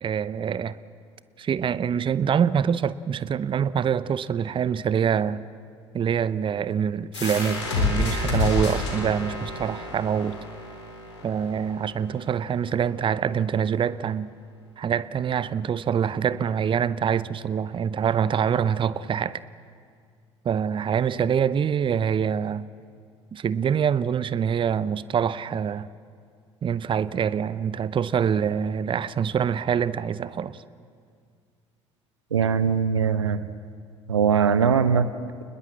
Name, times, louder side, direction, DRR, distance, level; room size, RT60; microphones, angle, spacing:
voice 1, 0.0-0.8 1.4-5.4 5.9-10.4 11.2-14.3 14.8-19.4 20.4-22.6 23.3-25.9 26.6-30.6, right 7 dB, 35° right, 0.7 m, -25 dB
sound 1, 7.1-12.5, left 3 dB, 80° left, 3.8 m, -29 dB
voice 2, 32.3-33.4 34.1-35.1, right 6 dB, 85° right, 0.7 m, -21 dB
28.5 x 20.5 x 7.6 m
figure-of-eight pair, 55°, 15 cm